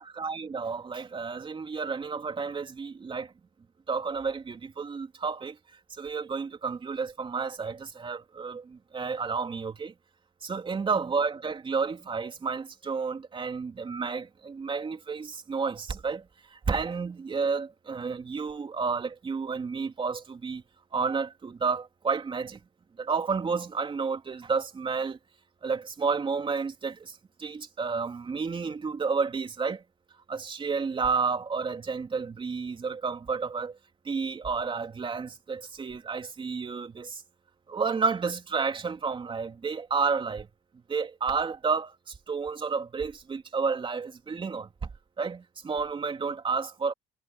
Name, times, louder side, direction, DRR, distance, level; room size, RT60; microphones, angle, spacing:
voice 1, 0.0-3.3 3.9-5.6 5.9-9.9 10.4-20.6 20.9-22.6 23.0-25.2 25.6-29.8 30.3-33.8 34.0-37.2 37.7-40.5 40.9-44.9 45.2-46.9, right 5 dB, 30° right, 3.2 m, -31 dB
cardioid pair, 110°, 17 cm